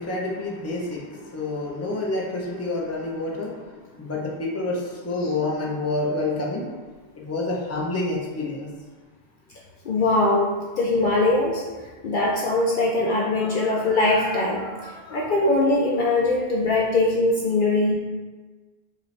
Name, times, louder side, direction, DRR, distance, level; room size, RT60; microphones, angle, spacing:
voice 1, 0.0-3.6 4.0-6.7 7.1-8.7, left 2 dB, 20° left, -3 dB, 0.5 m, -28 dB
voice 2, 9.8-11.6 12.0-17.9, left 2 dB, 60° left, -2 dB, 0.6 m, -22 dB
5.1 x 2.6 x 3.2 m, 1.3 s
omnidirectional pair, 1.1 m